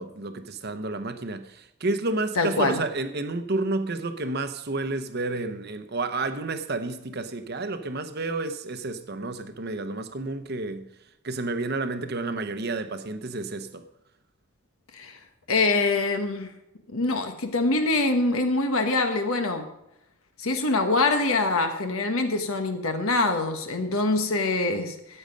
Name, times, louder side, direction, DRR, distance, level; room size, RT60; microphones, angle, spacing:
voice 1, 0.0-10.9 11.2-13.8, right 2 dB, 45° right, 0.9 m, -30 dB
voice 2, 2.4-2.8 14.9-15.2 15.5-16.5 16.9-19.7 20.4-25.2, left 3 dB, 70° left, 1.3 m, -24 dB
13.5 x 8.9 x 5.3 m
head